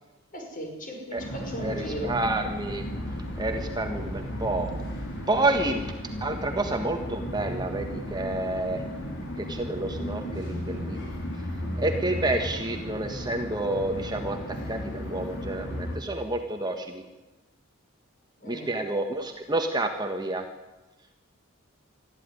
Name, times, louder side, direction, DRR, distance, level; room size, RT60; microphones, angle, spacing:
voice 1, 0.3-2.2 18.4-18.7, equal, 40° left, 2 dB, 5.5 m, -37 dB
sound 1, 1.2-16.0, equal, 55° left, 5.2 m, -34 dB
voice 2, 1.6-2.8 3.4-4.7 5.3-5.8 6.2-8.8 9.4-11.1 11.8-14.4 14.7-17.0 18.5-20.4, right 2 dB, 20° right, 4 dB, 1.5 m, -29 dB
22.5 x 14.5 x 9.8 m, 1.1 s
head